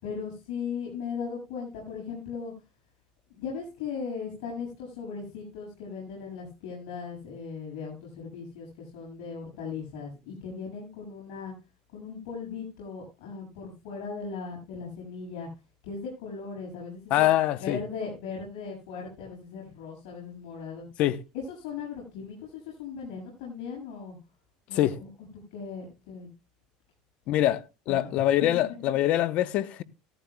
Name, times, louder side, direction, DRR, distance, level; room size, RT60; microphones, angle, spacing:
voice 1, 0.0-2.5 3.3-11.5 11.9-15.5 15.8-17.3 17.6-20.9 21.3-24.2 24.7-25.1 25.5-26.3 27.9-28.5, left 5 dB, 75° left, 7.4 m, -38 dB
voice 2, 17.1-17.8 21.0-21.2 24.7-25.0 27.3-27.6 27.9-29.8, left 13 dB, 50° left, 0.8 m, -24 dB
16.0 x 14.5 x 2.3 m
supercardioid pair, 135°, 3 cm